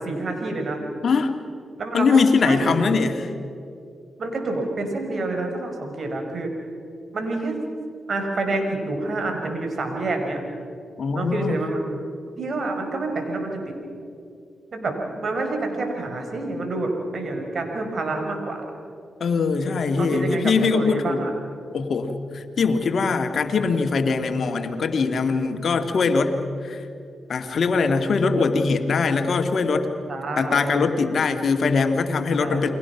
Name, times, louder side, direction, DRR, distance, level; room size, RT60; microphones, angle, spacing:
voice 1, 0.0-0.9 1.8-3.0 4.2-6.5 7.1-7.6 8.1-10.4 11.1-11.8 12.4-13.8 14.7-14.9 15.2-18.6 20.0-21.3 30.1-30.8 32.4-32.7, right 2 dB, 60° right, 3 dB, 5.6 m, -28 dB
voice 2, 1.0-1.3 1.9-3.3 11.0-11.6 19.2-21.2 21.7-26.8 27.3-29.9 30.4-32.7, left 4 dB, 65° left, 5 dB, 2.3 m, -22 dB
30.0 x 22.5 x 6.0 m, 2.5 s
supercardioid pair, 40°, 0 cm